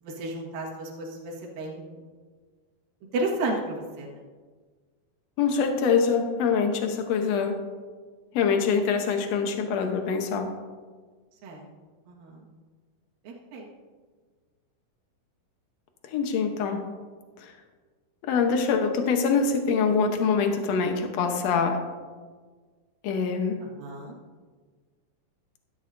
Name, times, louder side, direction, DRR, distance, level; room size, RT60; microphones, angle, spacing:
voice 1, 0.0-2.0 3.1-4.2 11.4-11.6 12.1-12.4 13.2-13.7 23.6-24.1, right 2 dB, 70° right, -3 dB, 3.3 m, -33 dB
voice 2, 5.4-7.6 8.3-10.5 16.1-16.9 17.4-17.5 18.3-21.8 23.0-23.6, left 5 dB, 85° left, 4 dB, 1.5 m, -24 dB
15.0 x 12.5 x 2.6 m, 1.5 s
omnidirectional pair, 4.4 m